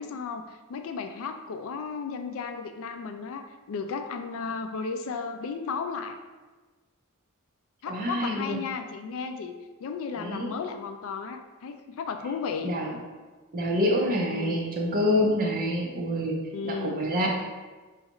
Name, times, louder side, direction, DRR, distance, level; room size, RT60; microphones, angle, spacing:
voice 1, 0.0-6.2 7.8-9.5 9.8-12.7 14.2-14.6 16.5-17.0, left 5 dB, 70° left, 7 dB, 0.3 m, -34 dB
voice 2, 7.9-8.6 10.2-10.5 12.6-13.0 13.5-16.4 16.6-17.3, equal, 40° right, -1 dB, 0.7 m, -27 dB
5.1 x 2.4 x 2.9 m, 1.3 s
head